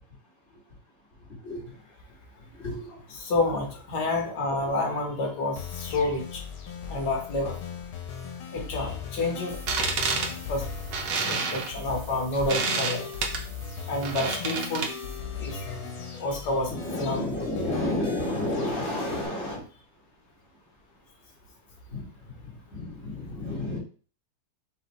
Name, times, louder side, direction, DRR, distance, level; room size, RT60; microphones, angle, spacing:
voice 1, 1.4-1.7 2.6-2.9 16.7-19.6 21.9-22.1 22.7-23.8, left 1 dB, 35° left, -6 dB, 2.5 m, -31 dB
voice 2, 3.1-6.4 6.9-7.6 8.5-9.6 10.2-10.7 11.3-13.1 13.9-14.9 15.4-15.6 16.2-16.7 17.0-17.4, left 2 dB, 55° left, 1 dB, 1.8 m, -29 dB
sound 1, 5.6-19.3, left 6 dB, 80° left, 1.7 m, -38 dB
sound 2, 9.5-15.2, right 4 dB, 65° right, 1.3 m, -30 dB
5.5 x 3.1 x 3.1 m, 0.38 s
omnidirectional pair, 2.3 m